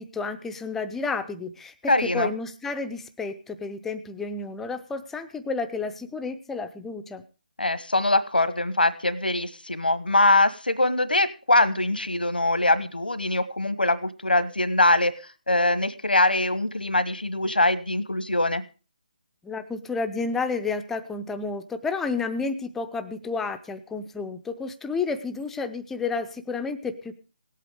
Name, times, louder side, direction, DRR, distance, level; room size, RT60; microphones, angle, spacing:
voice 1, 0.0-7.2 19.4-27.1, left 4 dB, 5° left, 9 dB, 0.6 m, -31 dB
voice 2, 1.9-2.3 7.6-15.1 15.5-18.6, left 2 dB, 85° left, 14 dB, 1.2 m, -22 dB
18.0 x 8.3 x 4.8 m, 0.34 s
figure-of-eight pair, 150°, 5 cm